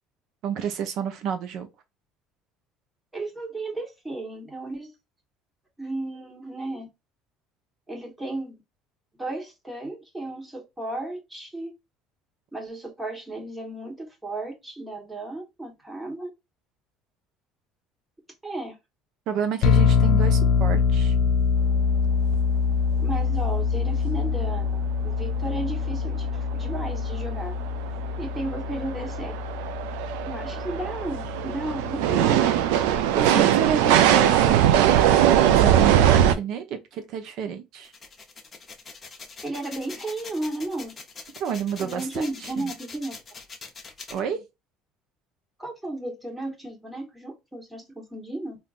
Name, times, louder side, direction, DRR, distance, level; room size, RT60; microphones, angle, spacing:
voice 1, 0.4-1.7 19.3-21.1 33.1-37.9 41.4-42.3 42.6-42.7 44.1-44.4, right 7 dB, 60° right, 0.8 m, -29 dB
voice 2, 3.1-4.9 5.8-6.9 7.9-8.6 9.2-11.7 12.5-16.3 18.4-18.8 23.0-27.5 28.2-29.3 30.3-32.8 39.4-40.9 41.8-43.1 45.6-48.6, right 2 dB, 10° right, 1.3 m, -34 dB
sound 1, 19.6-33.0, left 6 dB, 60° left, 0.6 m, -25 dB
sound 2, 22.1-22.2 22.3-22.4 22.7-22.9 23.4-23.5 26.5-26.6 27.1-36.4, right 10 dB, 90° right, 0.4 m, -21 dB
sound 3, 37.8-44.2, left 4 dB, 25° left, 0.9 m, -43 dB
3.6 x 2.6 x 2.5 m
cardioid pair, 115°, 0 cm